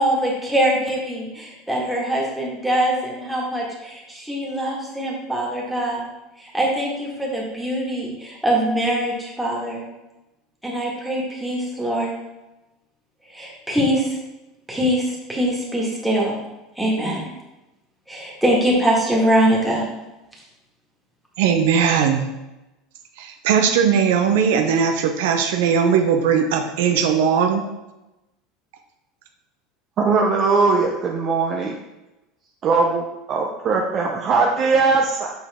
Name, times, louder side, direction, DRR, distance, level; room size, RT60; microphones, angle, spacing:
voice 1, 0.0-6.1 6.4-9.8 10.6-12.1 13.3-14.2 14.7-16.4 16.8-17.2 18.1-19.8, right 1 dB, 5° right, -4 dB, 1.9 m, -23 dB
voice 2, 21.4-22.3 23.2-27.6, right 7 dB, 80° right, 5 dB, 0.8 m, -19 dB
voice 3, 30.0-31.7 32.6-35.3, right 4 dB, 35° right, 0 dB, 0.7 m, -20 dB
7.3 x 5.5 x 3.6 m, 1.0 s
supercardioid pair, 140°, 0 cm